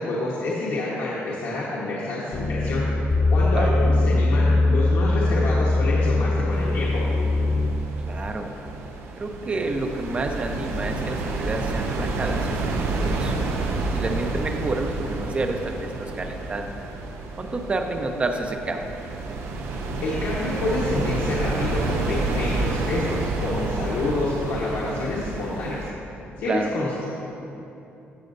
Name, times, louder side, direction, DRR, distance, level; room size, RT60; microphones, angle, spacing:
voice 1, 0.0-2.8 3.3-7.0 20.0-25.9 26.4-27.1, left 2 dB, 75° left, -7 dB, 1.4 m, -28 dB
sound 1, 2.3-7.7, left 2 dB, 40° left, 1.0 m, -21 dB
sound 2, 6.5-25.9, right 2 dB, 75° right, 0.8 m, -29 dB
voice 2, 8.1-8.5 9.2-13.4 13.9-16.7 17.4-19.0 26.4-26.7, right 2 dB, 30° right, 5 dB, 0.7 m, -29 dB
16.0 x 6.4 x 2.7 m, 2.9 s
cardioid pair, 115°, 4 cm